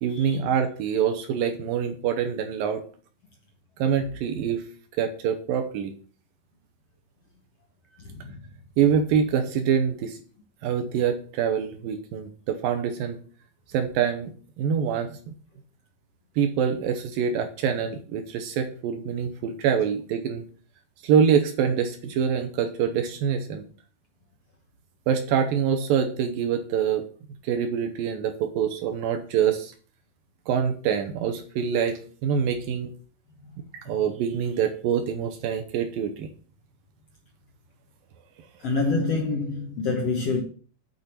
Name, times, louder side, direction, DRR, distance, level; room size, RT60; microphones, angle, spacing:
voice 1, 0.0-2.8 3.8-4.6 5.0-5.9 8.8-10.2 10.6-13.2 13.7-14.3 14.6-15.2 16.4-20.4 21.0-23.6 25.1-27.1 27.4-29.7 30.5-32.9 33.7-36.3, right 7 dB, 80° right, 2.6 m, -25 dB
voice 2, 8.0-8.3 38.6-40.4, left 3 dB, 65° left, 1.6 m, -26 dB
6.8 x 6.4 x 7.3 m
omnidirectional pair, 4.1 m